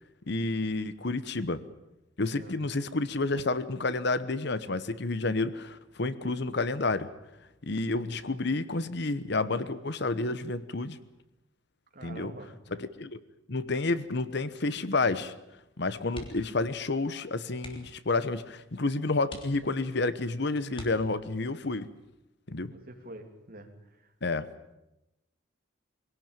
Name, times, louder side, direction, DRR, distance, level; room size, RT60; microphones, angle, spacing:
voice 1, 0.3-1.6 2.2-7.1 7.6-11.0 12.0-12.3 12.7-13.2 13.5-15.3 15.8-21.9 22.5-22.7 24.2-24.5, left 3 dB, 60° left, 14 dB, 1.1 m, -30 dB
voice 2, 11.9-12.5 22.7-23.7, right 1 dB, 50° right, 4 dB, 3.0 m, -46 dB
sound 1, 16.1-16.6 16.9-17.1 17.5-18.0 18.7-18.8 19.2-20.0 20.7-21.5 23.0-23.4 23.7-23.8, left 1 dB, 30° left, 3.3 m, -46 dB
23.0 x 17.5 x 9.1 m, 0.94 s
head